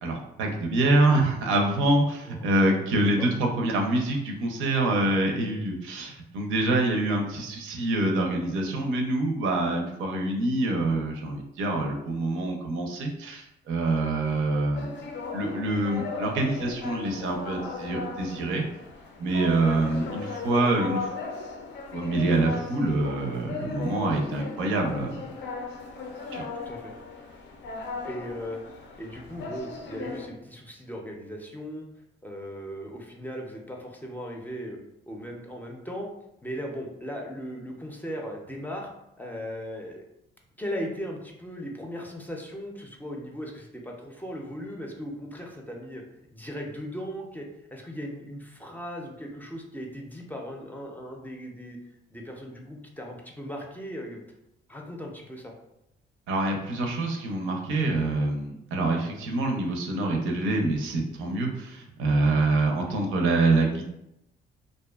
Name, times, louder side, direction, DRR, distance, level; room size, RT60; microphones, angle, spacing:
voice 1, 0.0-14.9 15.3-18.6 19.2-21.1 21.9-25.3 26.3-26.4 56.3-63.9, right 2 dB, 85° right, 2 dB, 0.5 m, -26 dB
voice 2, 2.2-2.8 3.2-3.3 19.8-20.1 26.7-26.9 28.0-28.6 29.0-31.8 32.2-34.8 35.1-36.1 36.4-38.9 39.2-40.0 40.6-46.0 46.3-47.5 47.7-51.8 52.1-54.2 54.7-55.5 62.7-63.0, equal, 10° left, 0 dB, 0.4 m, -38 dB
sound 1, 14.7-30.3, left 4 dB, 65° left, 0.5 m, -37 dB
2.5 x 2.2 x 2.3 m, 0.86 s
cardioid pair, 90°, 20 cm